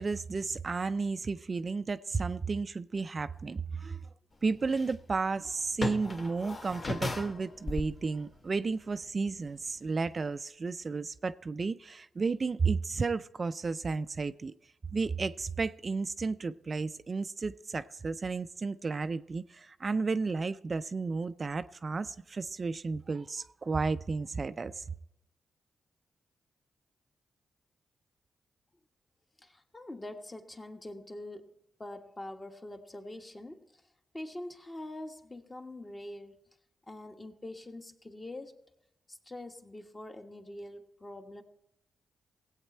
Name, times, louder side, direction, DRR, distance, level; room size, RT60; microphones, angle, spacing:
voice 1, 0.0-4.0 4.4-14.5 14.9-24.8, right 4 dB, 45° right, 0.4 m, -33 dB
sound 1, 4.5-9.0 9.4-9.5 9.9-10.0, left 2 dB, 45° left, 1.0 m, -37 dB
voice 2, 29.4-31.5 31.8-33.8 34.1-36.4 36.9-38.6 39.1-41.4, left 1 dB, 25° left, 1.4 m, -44 dB
17.0 x 8.2 x 4.3 m
cardioid pair, 55°, 0 cm